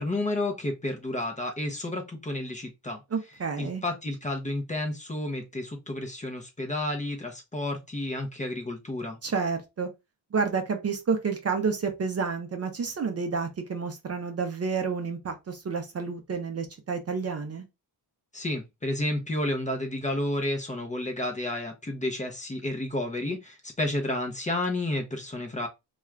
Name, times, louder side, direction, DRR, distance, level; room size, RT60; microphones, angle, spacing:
voice 1, 0.0-3.0 3.6-9.2 18.3-25.7, left 1 dB, 20° left, 0.6 m, -31 dB
voice 2, 3.1-3.8 9.2-9.9 10.3-17.6, right 5 dB, 40° right, 0.6 m, -30 dB
2.4 x 2.3 x 3.1 m
cardioid pair, 100°, 41 cm